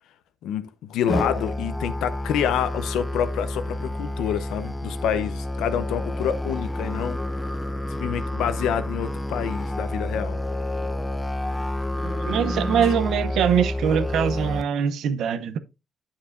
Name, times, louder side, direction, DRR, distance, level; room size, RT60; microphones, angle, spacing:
voice 1, 0.4-7.2 7.9-10.4 12.8-12.9, left 9 dB, 85° left, 0.7 m, -27 dB
Musical instrument, 1.1-14.6, left 1 dB, 10° left, 0.7 m, -29 dB
voice 2, 12.0-15.6, right 8 dB, 75° right, 0.7 m, -23 dB
8.7 x 7.2 x 2.6 m
cardioid pair, 90°, 0 cm